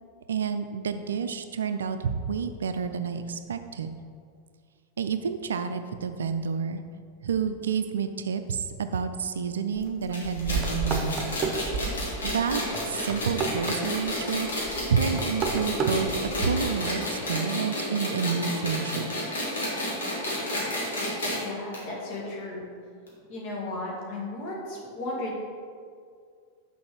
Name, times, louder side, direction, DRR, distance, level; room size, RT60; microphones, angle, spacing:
voice 1, 0.3-3.9 5.0-6.8 7.2-11.3 12.2-12.6 12.9-14.5 14.9-19.1, right 6 dB, 65° right, 9 dB, 0.4 m, -29 dB
sound 1, 9.7-14.1 14.4-16.4, right 4 dB, 25° right, 1.0 m, -32 dB
sound 2, 10.1-21.4 21.7-21.8 22.1-22.2 23.1-23.2, left 1 dB, 65° left, 2.1 m, -31 dB
voice 2, 21.4-22.7 23.3-25.4, left 2 dB, 50° left, -2 dB, 2.1 m, -35 dB
6.2 x 5.3 x 6.2 m, 2.2 s
figure-of-eight pair, 90°, 0 cm